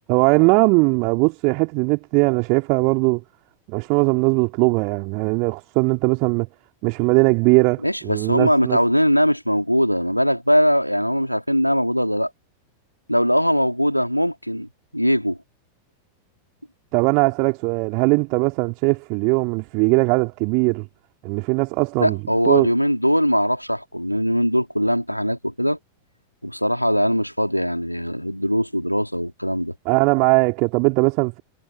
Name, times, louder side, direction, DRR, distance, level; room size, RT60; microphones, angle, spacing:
voice 1, 0.1-3.2 3.7-6.5 6.8-8.8 16.9-20.9 21.2-22.2 22.5-22.7 29.9-31.4, right 33 dB, 45° right, 3.8 m, -19 dB
voice 2, 7.8-12.3 13.1-15.4 22.0-25.8 26.4-29.7, equal, 90° left, 3.4 m, -21 dB
figure-of-eight pair, 90°, 0 cm